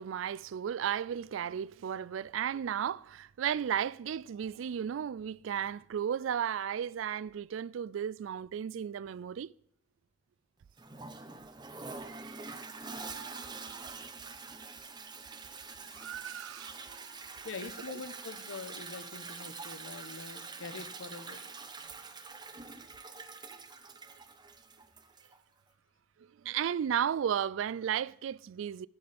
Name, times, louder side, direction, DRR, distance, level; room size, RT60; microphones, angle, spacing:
voice 1, 0.0-9.5 12.0-13.9 15.9-17.1 26.4-28.9, right 9 dB, 80° right, 0.3 m, -35 dB
Toilet flush, 10.8-25.4, right 4 dB, 20° right, 1.0 m, -45 dB
voice 2, 15.8-16.4 17.4-21.4 22.9-23.0 23.7-23.8, left 4 dB, 80° left, 1.0 m, -45 dB
19.0 x 6.8 x 3.4 m
head